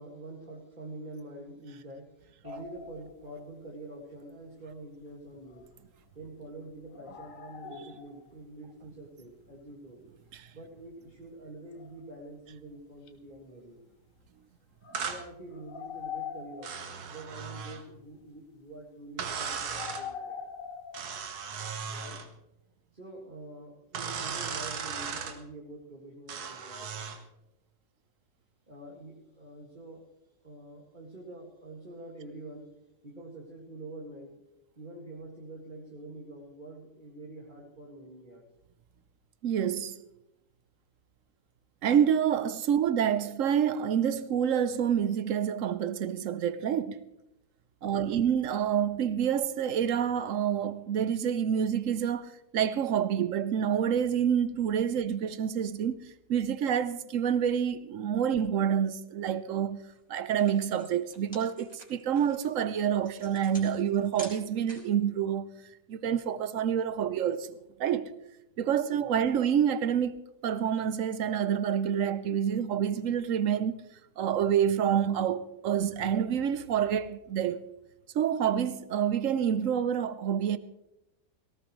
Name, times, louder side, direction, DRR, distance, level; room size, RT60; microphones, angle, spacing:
voice 1, 0.0-5.7 6.1-10.0 10.5-13.8 15.0-20.4 21.5-22.2 22.9-27.2 28.7-30.0 30.4-32.7 33.0-34.3 34.8-38.4 47.8-48.2 68.9-69.2, right 2 dB, 30° right, 2.2 m, -46 dB
sound 1, 2.4-3.7 4.8-6.1 6.9-8.5 8.8-8.9 10.3-10.4 10.8-10.9 11.1-11.2 11.7-12.1 12.6-12.7 13.0-13.4 14.2-14.3 14.8-17.3 19.6-21.6, left 7 dB, 60° left, 1.5 m, -43 dB
sound 2, 14.9-15.2 16.6-17.8 19.2-20.1 20.9-22.3 23.9-25.4 26.3-27.2, right 6 dB, 80° right, 1.7 m, -36 dB
voice 2, 39.4-40.0 41.8-47.0 47.8-56.0 56.3-59.8 60.1-65.5 65.9-68.2 68.6-70.2 70.4-73.8 74.2-77.6 78.1-80.6, right 8 dB, 65° right, 1.0 m, -28 dB
sound 3, 59.8-60.0 60.2-65.0, equal, 5° left, 3.9 m, -48 dB
18.5 x 17.5 x 3.2 m
omnidirectional pair, 1.6 m